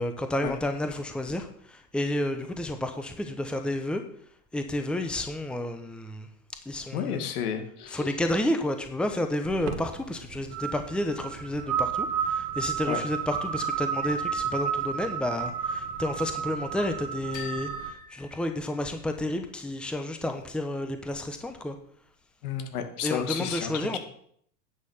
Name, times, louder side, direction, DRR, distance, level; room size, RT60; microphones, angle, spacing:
voice 1, 0.0-4.0 4.5-6.3 6.6-7.3 7.9-21.8 23.0-24.0, left 1 dB, ahead, 6 dB, 1.0 m, -31 dB
voice 2, 6.9-8.1 12.9-13.0 22.4-24.0, left 8 dB, 70° left, 6 dB, 2.3 m, -32 dB
sound 1, 9.4-17.9, right 7 dB, 70° right, 2.0 m, -32 dB
sound 2, 17.3-19.3, left 7 dB, 40° left, 3.0 m, -45 dB
9.9 x 6.4 x 7.2 m, 0.64 s
hypercardioid pair, 110°, 47 cm